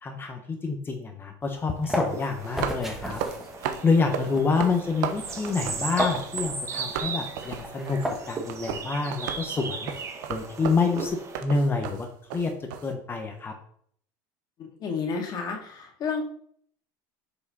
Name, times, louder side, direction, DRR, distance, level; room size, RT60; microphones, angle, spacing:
voice 1, 0.0-3.2 3.8-8.0 8.3-9.9 10.3-12.1 12.3-13.5, left 4 dB, 20° left, 4 dB, 0.9 m, -27 dB
sound 1, 1.5-8.5, equal, ahead, 1.5 m, -35 dB
sound 2, 2.1-11.4, right 4 dB, 30° right, 1.1 m, -37 dB
sound 3, 2.3-6.5 6.7-12.9, right 8 dB, 80° right, 0.9 m, -35 dB
voice 2, 14.6-16.2, left 5 dB, 40° left, 1 dB, 1.9 m, -31 dB
6.7 x 4.9 x 4.2 m, 0.62 s
supercardioid pair, 125°, 10 cm